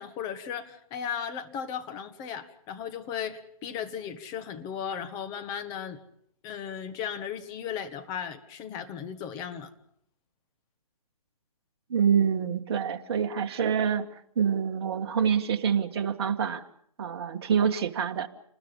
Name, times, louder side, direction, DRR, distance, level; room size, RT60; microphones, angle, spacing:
voice 1, 0.0-6.0 6.4-9.7, left 8 dB, 20° left, 8 dB, 1.5 m, -36 dB
voice 2, 11.9-14.0 14.4-16.6 17.0-18.3, right 7 dB, 45° right, 5 dB, 1.7 m, -26 dB
28.5 x 20.5 x 5.5 m, 0.69 s
hypercardioid pair, 145°, 19 cm